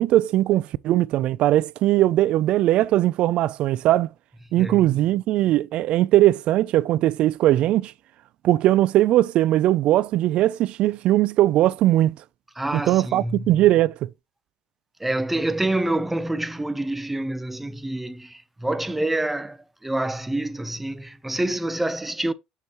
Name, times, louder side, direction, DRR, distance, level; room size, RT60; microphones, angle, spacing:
voice 1, 0.0-4.1 4.5-7.9 8.4-12.2 12.7-14.1, right 14 dB, 60° right, 0.3 m, -20 dB
voice 2, 4.6-4.9 12.6-13.6 15.0-22.3, right 1 dB, 10° right, 0.7 m, -27 dB
6.5 x 6.3 x 2.9 m
supercardioid pair, 85°, 2 cm